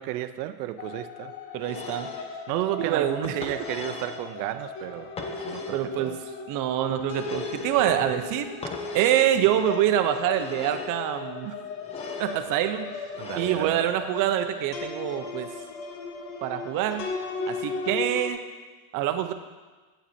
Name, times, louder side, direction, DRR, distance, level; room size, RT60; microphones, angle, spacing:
voice 1, 0.0-1.3 2.5-6.2 13.2-13.9, right 14 dB, 80° right, 11 dB, 0.6 m, -33 dB
sound 1, 0.8-18.3, left 4 dB, 75° left, 1.2 m, -37 dB
voice 2, 1.5-2.1 2.8-3.4 5.7-6.1 6.5-8.5 8.9-11.5 12.2-12.9 13.4-15.5 16.4-17.1 17.5-18.4 18.9-19.3, right 11 dB, 40° right, 7 dB, 0.6 m, -25 dB
sound 2, 1.6-2.3 3.2-4.2 5.2-5.9 7.1-7.8 8.6-9.3 10.3-11.0 11.8-12.4 13.1-13.7, left 3 dB, 15° left, 0.4 m, -39 dB
8.0 x 7.2 x 4.2 m, 1.3 s
cardioid pair, 145°, 48 cm